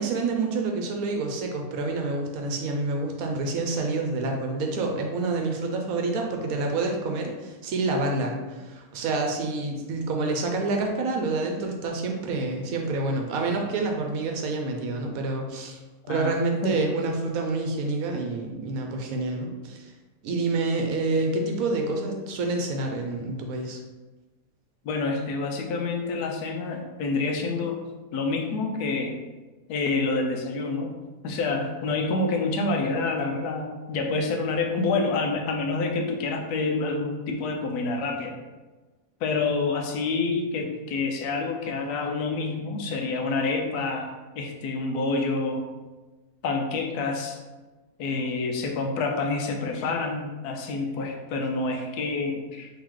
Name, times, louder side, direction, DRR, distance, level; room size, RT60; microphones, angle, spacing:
voice 1, 0.0-15.8 16.1-19.9 20.2-23.8, right 3 dB, 70° right, 2 dB, 1.0 m, -28 dB
voice 2, 16.0-16.4 16.6-16.8 24.8-27.8 28.1-29.2 29.7-31.0 31.2-38.4 39.2-44.1 44.4-45.7 46.4-47.4 48.0-52.7, left 3 dB, 80° left, 3 dB, 1.1 m, -27 dB
3.8 x 3.0 x 3.1 m, 1.2 s
omnidirectional pair, 1.6 m